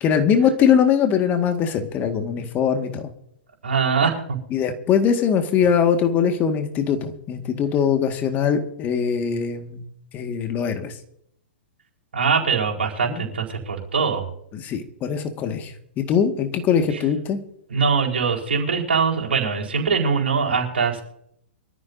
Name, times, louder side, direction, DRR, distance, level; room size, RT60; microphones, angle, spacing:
voice 1, 0.0-3.1 4.5-9.8 10.1-10.9 13.1-13.3 14.5-17.4, left 7 dB, 30° left, 6 dB, 1.9 m, -21 dB
voice 2, 3.6-4.4 12.1-14.3 17.7-21.0, right 5 dB, 75° right, 0 dB, 4.6 m, -22 dB
24.0 x 14.0 x 2.7 m, 0.73 s
figure-of-eight pair, 110°, 6 cm